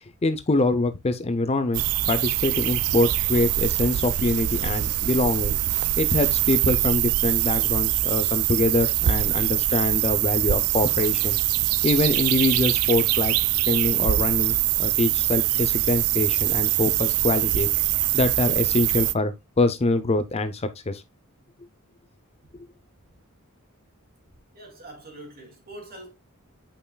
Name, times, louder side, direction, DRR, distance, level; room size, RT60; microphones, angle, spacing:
voice 1, 0.2-5.6 6.0-11.4 11.8-13.3 13.7-17.7 18.1-21.0, left 2 dB, 30° left, 0.5 m, -24 dB
sound 1, 1.7-19.1, right 14 dB, 75° right, 0.4 m, -23 dB
voice 2, 24.5-26.1, right 1 dB, 45° right, 2.5 m, -43 dB
8.6 x 5.6 x 2.2 m
head